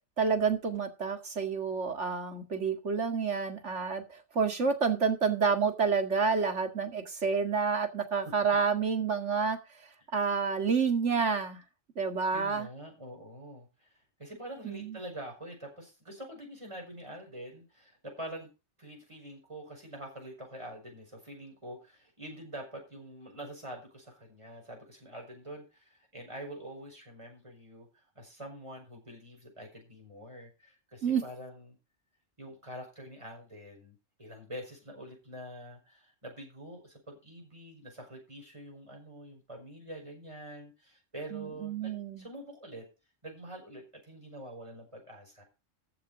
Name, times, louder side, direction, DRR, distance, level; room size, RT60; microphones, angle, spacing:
voice 1, 0.2-9.6 10.1-11.6 12.0-12.7 14.6-15.0 31.0-31.2 41.3-42.3, right 5 dB, 90° right, 2.4 m, -29 dB
voice 2, 12.3-18.5 18.8-31.8 32.4-42.8 43.2-45.4, right 1 dB, 25° right, 5.6 m, -46 dB
14.5 x 7.2 x 5.0 m
omnidirectional pair, 1.2 m